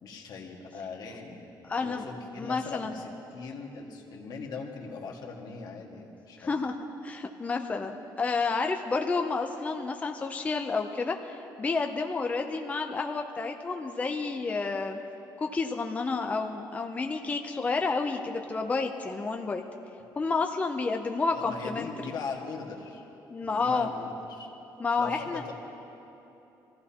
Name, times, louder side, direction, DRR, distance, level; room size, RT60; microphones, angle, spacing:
voice 1, 0.0-6.5 21.3-23.0 23.4-24.5 25.0-25.5, left 4 dB, 60° left, 0 dB, 1.7 m, -40 dB
voice 2, 1.6-2.0 2.4-3.0 6.4-6.7 7.0-15.0 15.4-19.6 20.2-22.1 23.3-23.9 24.8-25.4, left 4 dB, 20° left, 4 dB, 0.5 m, -30 dB
24.5 x 15.0 x 2.9 m, 3.0 s
cardioid pair, 160°, 8 cm